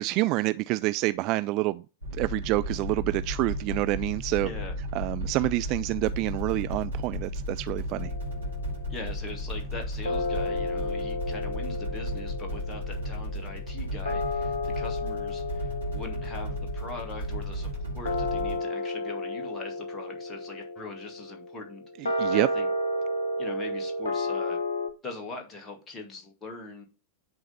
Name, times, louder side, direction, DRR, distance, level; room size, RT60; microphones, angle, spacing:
voice 1, 0.0-1.8 2.2-4.5 4.9-8.1 22.0-22.5, right 19 dB, 40° right, 0.3 m, -27 dB
sound 1, 2.0-18.6, equal, 80° right, 2.6 m, -34 dB
voice 2, 4.4-4.7 8.9-22.7 23.4-24.6 25.0-26.8, left 3 dB, 20° left, 2.4 m, -41 dB
sound 2, 7.9-9.3 10.1-24.9, left 2 dB, 70° left, 1.1 m, -33 dB
10.5 x 3.8 x 5.5 m
figure-of-eight pair, 90°, 0 cm